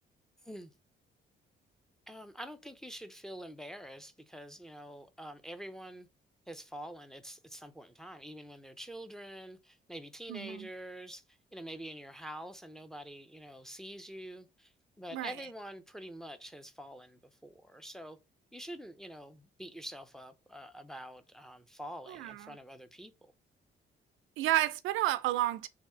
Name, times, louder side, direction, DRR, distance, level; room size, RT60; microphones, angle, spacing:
voice 1, 2.1-6.1 6.5-11.2 11.5-18.2 18.5-23.3, equal, ahead, 0.5 m, -46 dB
voice 2, 10.3-10.7 15.1-15.4 22.1-22.6 24.4-25.7, right 15 dB, 90° right, 0.4 m, -31 dB
3.4 x 2.7 x 4.3 m
cardioid pair, 90°, 20 cm